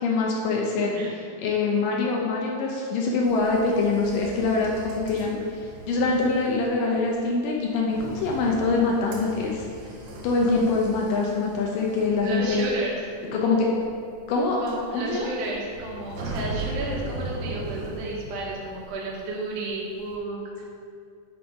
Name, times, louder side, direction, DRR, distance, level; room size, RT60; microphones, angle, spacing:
voice 1, 0.0-0.9 1.4-5.4 5.9-9.6 10.2-12.7 13.3-13.7 14.3-14.6 14.9-15.3, left 3 dB, 85° left, -1 dB, 1.9 m, -24 dB
sound 1, 3.2-19.2 19.4-20.2, right 2 dB, 60° right, 2.6 m, -39 dB
voice 2, 12.2-13.0 14.6-20.7, right 2 dB, 75° right, -3 dB, 3.3 m, -32 dB
10.5 x 3.8 x 5.1 m, 2.3 s
omnidirectional pair, 4.9 m